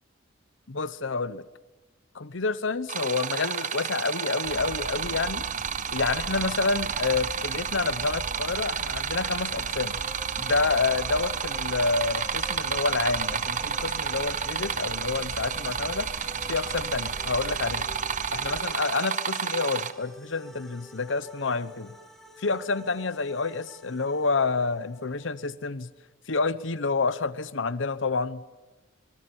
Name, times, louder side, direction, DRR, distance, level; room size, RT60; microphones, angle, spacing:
voice 1, 0.7-1.4 2.1-5.5 5.9-10.0 10.4-16.1 16.5-17.9 18.3-21.9 22.4-25.9 26.3-28.4, left 4 dB, 80° left, 0.9 m, -28 dB
sound 1, 2.9-19.9, right 7 dB, 40° right, 1.0 m, -31 dB
sound 2, 4.4-18.6, right 1 dB, 70° right, 3.0 m, -42 dB
sound 3, 10.0-25.4, left 1 dB, ahead, 2.7 m, -48 dB
25.0 x 23.5 x 7.3 m
head